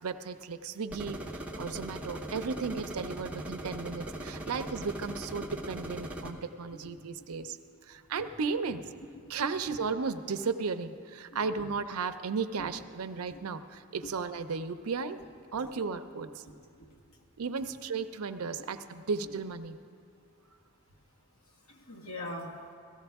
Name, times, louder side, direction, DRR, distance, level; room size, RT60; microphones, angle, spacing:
voice 1, 0.0-7.6 7.8-8.8 9.3-15.2 15.5-16.4 17.4-19.8, right 5 dB, 80° right, 10 dB, 0.5 m, -35 dB
sound 1, 0.9-6.3, right 1 dB, 5° right, 0.8 m, -40 dB
voice 2, 16.4-16.9 17.6-17.7 18.5-18.6 19.0-19.1 21.7-22.6, left 1 dB, 70° left, -1 dB, 1.5 m, -44 dB
17.0 x 14.0 x 3.5 m, 2.4 s
head